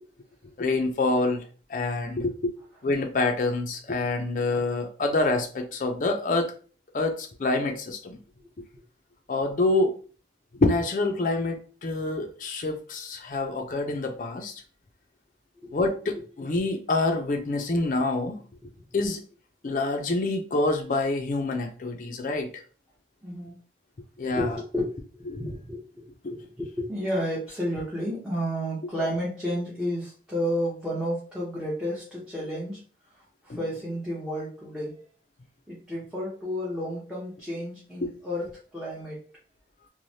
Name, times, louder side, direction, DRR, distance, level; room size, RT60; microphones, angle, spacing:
voice 1, 0.6-1.4 1.7-2.5 2.8-6.5 6.9-8.2 9.3-10.0 10.6-14.5 15.7-18.3 18.9-19.2 19.6-22.5 24.2-24.5 25.3-25.4 26.2-26.3 33.5-33.6 38.0-38.1, left 2 dB, 45° left, 0.4 m, -26 dB
voice 2, 23.2-23.6 24.3-32.8 33.4-35.0 35.7-39.2, equal, 5° right, 0.7 m, -32 dB
3.1 x 2.1 x 2.6 m
head